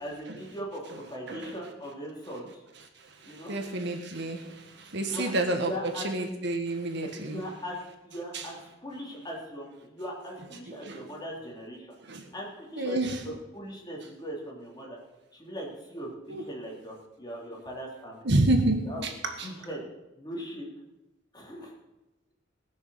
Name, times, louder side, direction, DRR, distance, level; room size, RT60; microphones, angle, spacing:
voice 1, 0.0-2.6 3.2-3.6 5.0-5.3 5.6-6.1 7.0-7.8 8.0-15.0 15.3-18.3 18.8-19.0 19.4-19.8 20.2-20.7 21.3-21.7, equal, 20° left, -3 dB, 3.4 m, -40 dB
voice 2, 3.1-5.7 6.0-7.4 8.3-8.5 10.7-11.0 12.1-12.3 12.8-13.2 16.3-16.4 18.2-19.1 19.4-19.5, right 2 dB, 60° right, 4 dB, 1.6 m, -29 dB
19.5 x 6.6 x 6.5 m, 0.98 s
head